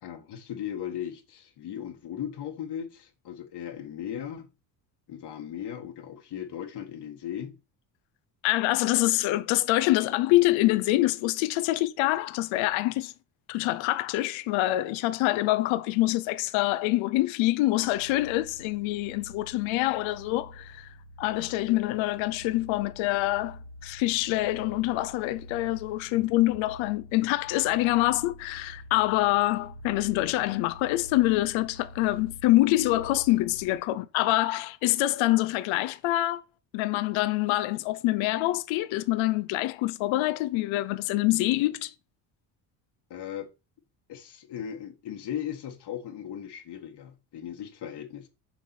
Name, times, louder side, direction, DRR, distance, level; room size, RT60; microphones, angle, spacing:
voice 1, 0.0-4.5 5.1-7.6 33.9-34.0 43.1-43.5 44.1-48.3, left 9 dB, 55° left, 1.5 m, -37 dB
voice 2, 8.4-13.1 13.5-36.4 36.7-41.9, left 17 dB, 75° left, 0.7 m, -25 dB
sound 1, 17.7-33.9, equal, 90° right, 1.7 m, -47 dB
7.3 x 4.6 x 4.3 m
supercardioid pair, 90°, 47 cm